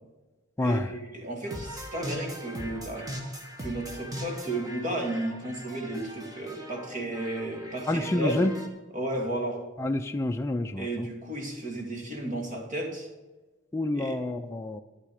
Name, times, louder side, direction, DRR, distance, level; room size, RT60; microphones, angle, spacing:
voice 1, 0.6-3.1 3.6-8.5 8.9-9.6 10.8-13.1 13.9-14.2, right 1 dB, 35° right, 1 dB, 2.3 m, -33 dB
sound 1, 1.5-8.7, equal, 15° right, 1.4 m, -40 dB
voice 2, 7.9-8.5 9.8-11.1 13.7-14.8, left 1 dB, 15° left, 4 dB, 0.4 m, -28 dB
12.0 x 10.5 x 5.0 m, 1.2 s
head